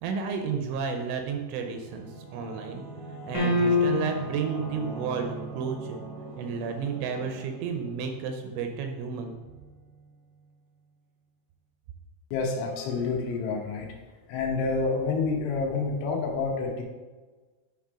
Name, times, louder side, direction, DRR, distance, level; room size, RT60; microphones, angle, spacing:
voice 1, 0.0-2.8 3.3-6.1 6.4-9.4, right 6 dB, 80° right, 4 dB, 2.9 m, -32 dB
Singing / Musical instrument, 1.4-10.4, right 2 dB, 65° right, 0.9 m, -42 dB
sound 1, 3.3-4.4, left 3 dB, 60° left, 1.9 m, -24 dB
voice 2, 12.3-13.9 14.3-16.8, left 4 dB, 80° left, 1 dB, 3.3 m, -28 dB
9.0 x 3.2 x 4.9 m, 1.3 s
omnidirectional pair, 5.7 m